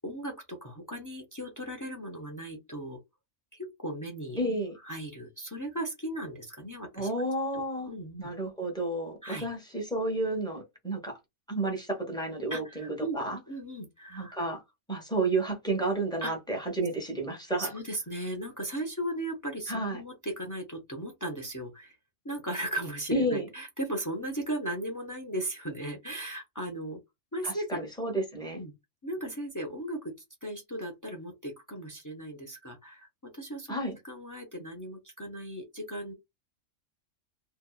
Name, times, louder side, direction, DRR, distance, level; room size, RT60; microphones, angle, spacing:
voice 1, 0.0-3.0 3.6-4.4 4.8-7.1 7.5-7.6 7.9-8.3 9.2-9.5 12.5-13.2 13.5-14.3 16.2-16.3 17.6-22.0 22.2-27.0 27.3-27.8 28.5-28.7 29.0-30.1 30.4-36.1, right 1 dB, 30° left, 0.3 m, -37 dB
voice 2, 4.4-4.8 7.0-7.9 8.2-11.2 11.5-13.4 14.1-14.6 14.9-17.7 19.7-20.0 23.1-23.5 27.4-28.6 33.7-34.0, right 2 dB, 5° left, 0.8 m, -31 dB
2.7 x 2.3 x 2.3 m
omnidirectional pair, 1.4 m